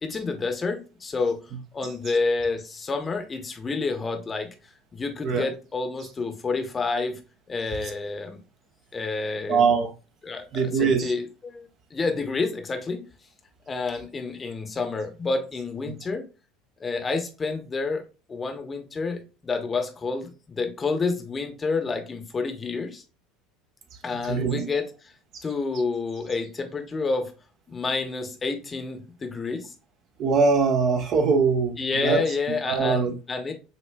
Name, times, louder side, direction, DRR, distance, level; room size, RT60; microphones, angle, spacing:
voice 1, 0.0-1.4 1.7-4.5 4.9-7.2 7.5-8.4 8.9-9.7 10.2-13.0 13.7-16.2 16.8-18.0 18.3-23.0 24.0-25.1 25.4-27.3 27.7-29.7 31.8-33.5, left 4 dB, 25° left, 0.8 m, -29 dB
voice 2, 9.5-9.9 10.5-11.1 24.1-24.7 30.2-31.8 32.0-32.2 32.7-33.1, right 5 dB, 45° right, 0.8 m, -22 dB
6.5 x 2.5 x 2.2 m
figure-of-eight pair, 70°, 0 cm